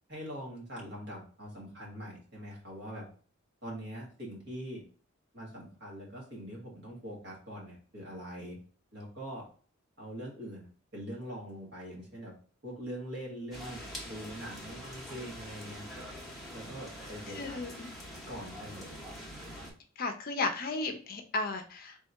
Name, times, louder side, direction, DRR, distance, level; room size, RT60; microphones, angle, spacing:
voice 1, 0.1-3.0 3.6-4.8 5.3-8.6 8.9-9.4 10.0-10.7 10.9-12.3 12.6-16.1 16.5-17.6 18.3-18.9, equal, 60° right, -3 dB, 1.6 m, -43 dB
sound 1, 13.5-19.7, equal, ahead, 1.0 m, -44 dB
voice 2, 17.3-17.9 20.0-22.0, left 3 dB, 45° left, 5 dB, 0.6 m, -34 dB
3.5 x 2.7 x 4.5 m, 0.41 s
head